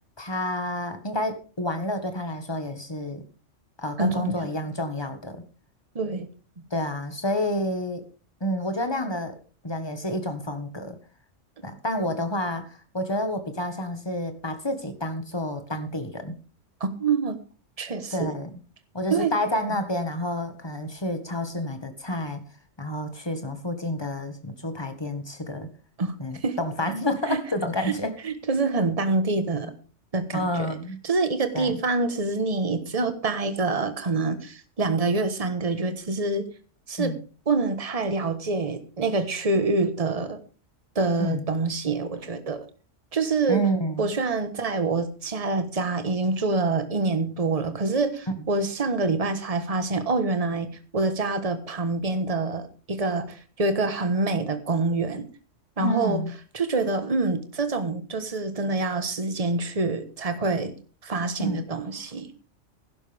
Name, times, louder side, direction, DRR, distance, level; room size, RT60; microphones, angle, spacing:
voice 1, 0.2-3.2 3.8-5.4 6.7-8.0 8.4-9.4 9.6-11.0 11.6-16.4 18.1-18.5 18.9-22.4 22.8-25.7 26.2-28.1 30.3-31.0 31.5-31.8 37.0-37.2 41.2-41.4 43.5-44.1 48.4-48.5 55.8-56.3 61.4-61.6, left 1 dB, 20° left, 1.6 m, -29 dB
voice 2, 4.0-4.4 5.9-6.3 16.8-17.3 17.8-18.3 19.1-19.3 26.0-26.1 26.4-26.6 27.3-27.4 27.8-28.0 28.2-29.7 30.1-30.7 31.0-36.5 36.9-37.1 37.5-40.4 40.9-42.6 43.1-43.6 44.0-55.3 55.8-56.2 56.5-60.7 61.0-62.3, right 3 dB, 30° right, 1.3 m, -26 dB
15.5 x 11.5 x 3.5 m
omnidirectional pair, 1.3 m